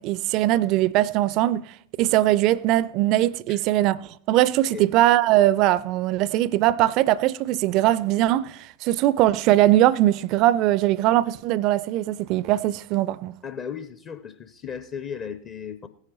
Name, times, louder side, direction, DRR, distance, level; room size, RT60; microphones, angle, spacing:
voice 1, 0.0-1.6 2.0-13.4, right 14 dB, 40° right, 0.4 m, -21 dB
voice 2, 13.4-15.9, left 7 dB, 30° left, 0.6 m, -35 dB
17.0 x 9.5 x 3.0 m
figure-of-eight pair, 90°, 0 cm